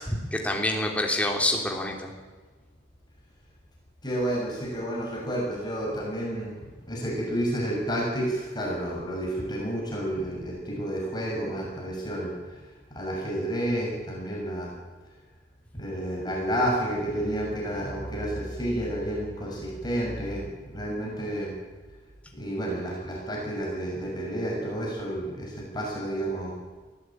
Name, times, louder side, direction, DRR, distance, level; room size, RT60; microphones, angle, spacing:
voice 1, 0.0-2.1, left 1 dB, 5° left, 1 dB, 3.3 m, -27 dB
voice 2, 4.0-14.7 15.7-21.5 22.3-26.5, right 1 dB, 20° left, -3 dB, 6.9 m, -30 dB
22.5 x 15.5 x 9.3 m, 1.3 s
head